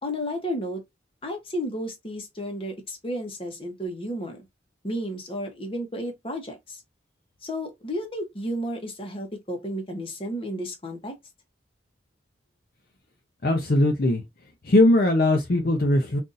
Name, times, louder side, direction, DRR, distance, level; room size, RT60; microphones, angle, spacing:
voice 1, 0.0-0.8 1.2-4.4 4.8-6.8 7.4-11.1, equal, 30° left, 0.9 m, -32 dB
voice 2, 13.4-14.2 14.6-16.2, left 1 dB, 50° left, 0.6 m, -20 dB
3.9 x 2.6 x 2.5 m
head